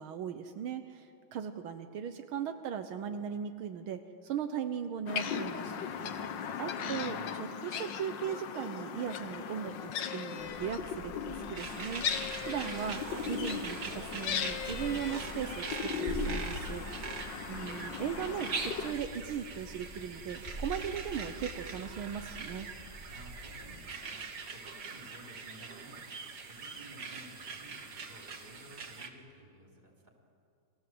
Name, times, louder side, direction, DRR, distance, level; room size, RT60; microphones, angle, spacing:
voice 1, 0.0-5.8 6.2-12.1 12.5-13.0 13.3-16.9 17.5-22.7, right 8 dB, 80° right, 8 dB, 1.8 m, -38 dB
sound 1, 5.1-18.9, left 7 dB, 65° left, 1.7 m, -38 dB
sound 2, 10.4-23.6, right 1 dB, 25° left, 4.0 m, -46 dB
sound 3, 11.6-29.1, right 4 dB, 55° right, 2.2 m, -43 dB
voice 2, 23.1-24.2 24.5-26.0 26.5-30.1, right 1 dB, 20° right, 0 dB, 4.2 m, -54 dB
29.5 x 22.0 x 7.9 m, 2.5 s
omnidirectional pair, 2.3 m